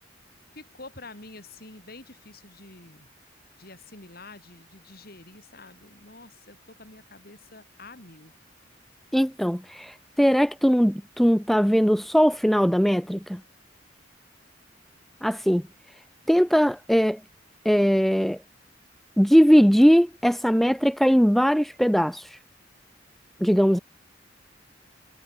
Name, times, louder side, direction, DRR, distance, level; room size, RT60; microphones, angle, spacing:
voice 1, 0.5-3.1 3.6-8.3, left 2 dB, 55° left, 7.1 m, -47 dB
voice 2, 9.1-13.4 15.2-15.6 16.3-17.2 17.6-18.4 19.2-22.4 23.4-23.8, equal, ahead, 1.6 m, -20 dB
head